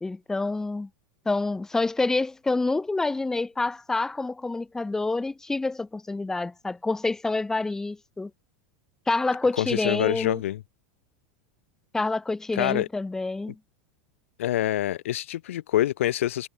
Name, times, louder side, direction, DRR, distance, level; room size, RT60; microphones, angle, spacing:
voice 1, 0.0-0.9 1.3-8.3 9.1-10.4 11.9-13.6, left 3 dB, 5° left, 0.5 m, -27 dB
voice 2, 9.6-10.6 12.5-12.9 14.4-16.5, left 13 dB, 90° left, 1.2 m, -26 dB
supercardioid pair, 130°, 7 cm